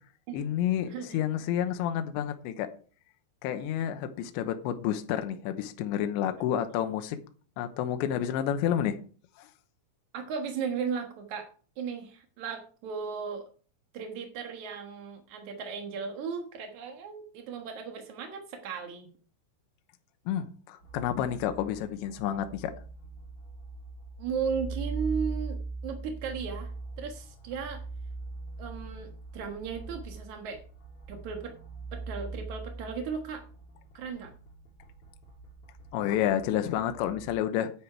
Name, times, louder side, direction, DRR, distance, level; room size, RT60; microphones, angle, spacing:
voice 1, 0.3-2.7 3.4-7.2 7.6-9.0 9.4-9.5 20.3-22.7 35.9-37.7, left 10 dB, 75° left, 2.9 m, -30 dB
voice 2, 10.1-11.5 11.8-13.5 13.9-19.1 24.2-26.7 27.0-27.8 28.6-30.6 31.1-31.5 31.9-33.4 33.9-34.3, right 6 dB, 75° right, 1.7 m, -36 dB
sound 1, 20.8-37.3, right 3 dB, 30° left, 3.6 m, -41 dB
10.0 x 9.7 x 4.6 m
omnidirectional pair, 5.7 m